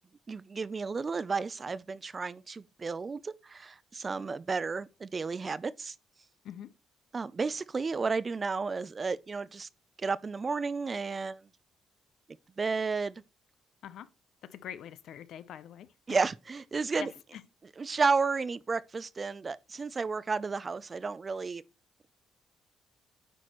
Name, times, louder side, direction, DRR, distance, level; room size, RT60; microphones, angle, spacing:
voice 1, 0.3-5.9 7.1-9.7 10.0-11.4 12.6-13.2 16.1-17.1 17.8-21.6, right 4 dB, 35° right, 0.4 m, -32 dB
voice 2, 14.4-16.3 17.0-17.4, left 10 dB, 75° left, 0.5 m, -45 dB
9.1 x 4.2 x 3.0 m
cardioid pair, 90°, 0 cm